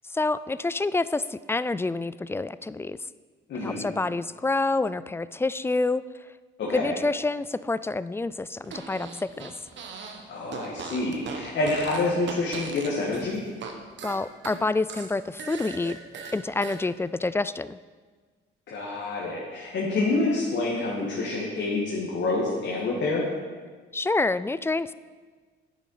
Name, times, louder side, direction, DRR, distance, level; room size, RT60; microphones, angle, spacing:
voice 1, 0.1-3.0 3.5-6.0 6.7-9.5 14.0-16.0 16.3-17.8 23.9-24.9, left 3 dB, 10° left, 16 dB, 0.3 m, -27 dB
voice 2, 3.5-3.9 6.6-7.0 10.3-13.4 18.7-23.3, left 2 dB, 65° left, -4 dB, 2.3 m, -27 dB
Fart, 8.6-10.2 10.5-13.7 14.0-16.8, right 5 dB, 65° right, 1.4 m, -39 dB
11.0 x 9.0 x 5.0 m, 1.5 s
cardioid pair, 90°, 20 cm